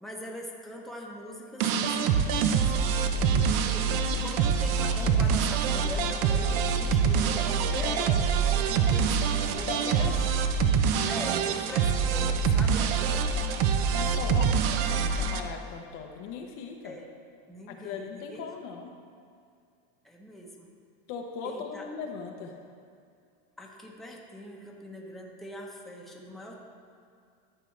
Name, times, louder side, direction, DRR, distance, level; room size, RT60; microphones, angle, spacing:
voice 1, 0.0-2.7 3.4-4.0 4.2-10.3 11.1-13.3 16.8-17.1 17.5-18.4 20.0-20.7 21.4-21.8 23.6-26.5, equal, ahead, -2 dB, 1.0 m, -42 dB
sound 1, 1.6-15.4, right 6 dB, 50° right, 0.6 m, -25 dB
voice 2, 3.1-3.6 9.7-10.3 13.7-17.0 17.7-19.0 21.1-22.6, left 5 dB, 45° left, 3 dB, 0.8 m, -39 dB
12.5 x 6.7 x 3.3 m, 2.4 s
supercardioid pair, 135°, 29 cm